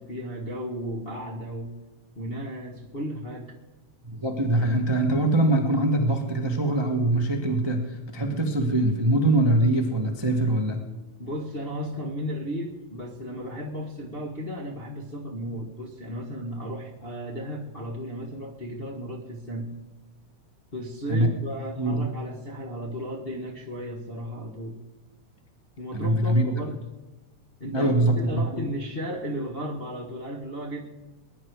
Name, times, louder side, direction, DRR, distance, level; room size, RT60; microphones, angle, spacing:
voice 1, 0.0-1.7 2.1-3.5 11.2-19.8 20.7-24.8 25.8-26.8 27.6-30.8, equal, 35° left, -2 dB, 0.9 m, -34 dB
voice 2, 4.1-10.8 21.1-21.3 21.7-22.0 25.9-26.4 27.7-28.4, right 1 dB, 15° right, 3 dB, 0.8 m, -23 dB
21.0 x 10.5 x 4.7 m, 1.1 s
omnidirectional pair, 3.3 m